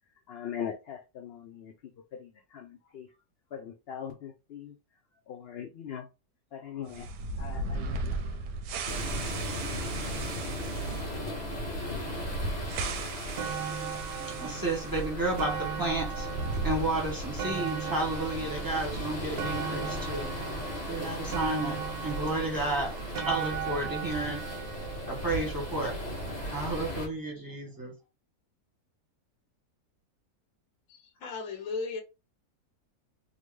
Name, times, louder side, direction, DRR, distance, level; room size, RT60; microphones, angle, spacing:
voice 1, 0.3-1.7 2.2-3.1 3.5-4.7 5.3-6.1 6.5-7.1 7.4-8.2, left 8 dB, 85° left, 0.5 m, -41 dB
sound 1, 6.9-15.1 15.3-15.4 16.1-17.4, right 3 dB, 85° right, 1.1 m, -36 dB
sound 2, 8.8-27.1, equal, 30° left, 1.4 m, -37 dB
sound 3, 12.6-12.7 13.1-26.3 27.0-27.1, right 7 dB, 60° right, 0.7 m, -38 dB
voice 2, 14.4-16.3 16.6-20.3 20.9-22.9 23.2-24.4 25.1-25.9 26.5-27.9, right 2 dB, 15° right, 0.8 m, -32 dB
voice 3, 30.9-32.0, left 4 dB, 65° left, 1.2 m, -36 dB
3.7 x 2.1 x 3.2 m
omnidirectional pair, 1.6 m